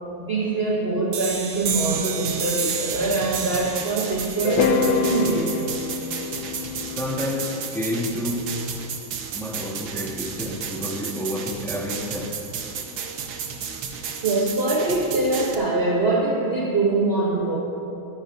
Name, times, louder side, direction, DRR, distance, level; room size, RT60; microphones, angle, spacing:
voice 1, 0.0-5.7 13.6-13.7 14.2-17.6, right 2 dB, 45° right, 0.8 m, -23 dB
sound 1, 1.1-6.5, right 6 dB, 60° right, 1.3 m, -32 dB
sound 2, 1.8-15.5, right 6 dB, 80° right, 1.8 m, -33 dB
sound 3, 4.4-8.6, left 6 dB, 75° left, 0.9 m, -26 dB
voice 2, 7.0-8.5 9.3-12.4, left 1 dB, ahead, 1.4 m, -29 dB
22.5 x 10.5 x 2.7 m
omnidirectional pair, 2.3 m